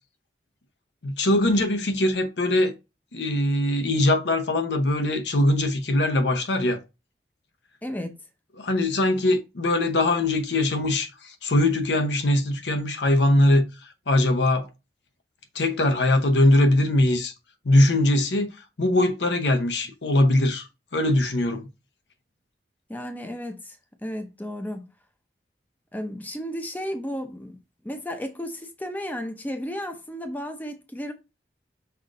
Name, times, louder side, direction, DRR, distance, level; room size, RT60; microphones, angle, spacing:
voice 1, 1.0-2.7 3.1-6.8 8.6-13.7 14.1-14.7 15.5-17.3 17.6-18.5 18.8-21.7, left 1 dB, 85° left, 0.8 m, -21 dB
voice 2, 7.8-8.1 22.9-24.9 25.9-27.6 27.8-31.1, equal, 10° left, 0.6 m, -33 dB
5.7 x 2.5 x 3.7 m
head